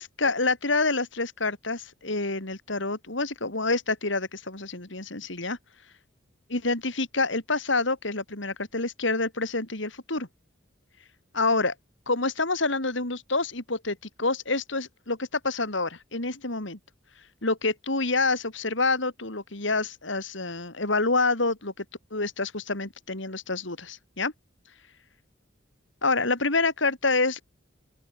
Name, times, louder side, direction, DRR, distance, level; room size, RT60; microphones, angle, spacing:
voice 1, 0.0-5.6 6.5-10.3 11.3-11.7 12.1-16.8 17.4-21.8 22.1-24.3 26.0-27.4, left 3 dB, 70° left, 3.6 m, -27 dB
open air
head